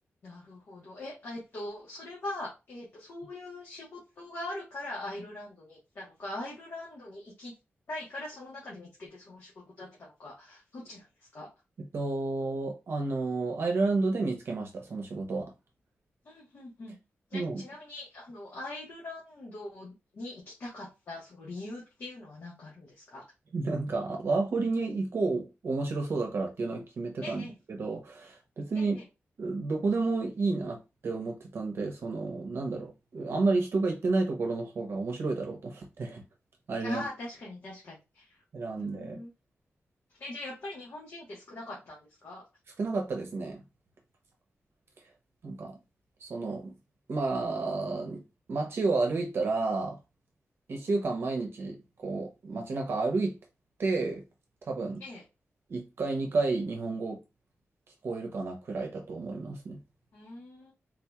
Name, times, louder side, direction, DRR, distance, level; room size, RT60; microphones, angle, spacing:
voice 1, 0.2-7.5 7.9-11.5 16.2-16.9 17.3-23.2 27.2-27.5 28.7-29.0 36.8-38.4 38.8-39.3 40.2-42.4 55.0-55.2 60.1-60.7, left 2 dB, 60° left, 1.2 m, -42 dB
voice 2, 11.9-15.5 17.3-17.6 23.5-29.0 29.4-36.2 36.7-37.0 38.5-39.2 42.8-43.6 45.4-45.8 46.2-46.7 47.1-48.2 48.5-50.0 50.7-51.8 52.0-53.4 53.8-54.2 54.6-55.0 55.7-57.2 58.0-59.8, right 3 dB, 60° right, 0.7 m, -31 dB
3.7 x 2.8 x 2.3 m
wide cardioid pair, 175°, 5 cm